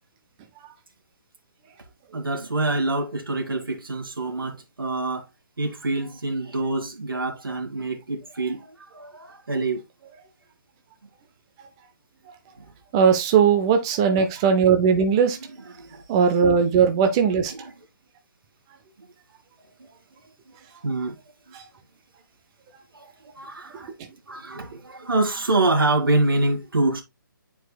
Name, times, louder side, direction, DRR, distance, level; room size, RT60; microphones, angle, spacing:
voice 1, 2.1-5.3 5.6-9.8 12.6-12.7 15.8-16.0 17.5-17.7 19.0-19.1 19.8-19.9 20.5-21.2 22.9-23.9 24.3-27.0, right 2 dB, 85° right, 2.0 m, -26 dB
voice 2, 12.9-15.4 16.1-17.5 21.5-21.6, right 6 dB, 15° right, 0.4 m, -19 dB
9.1 x 4.6 x 2.2 m
hypercardioid pair, 160°, 11 cm